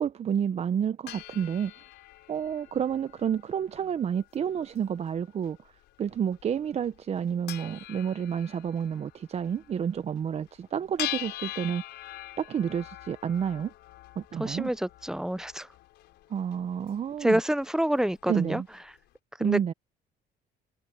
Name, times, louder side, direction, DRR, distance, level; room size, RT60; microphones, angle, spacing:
voice 1, 0.0-1.7 2.3-5.6 6.0-11.8 12.4-13.7 14.2-14.7 16.3-17.4 18.3-18.7 19.4-19.7, right 8 dB, 40° right, 0.7 m, -29 dB
sound 1, 1.1-19.0, left 16 dB, 85° left, 4.8 m, -44 dB
voice 2, 14.4-15.7 17.2-18.6 19.4-19.6, right 1 dB, 5° right, 0.4 m, -27 dB
cardioid pair, 110°, 17 cm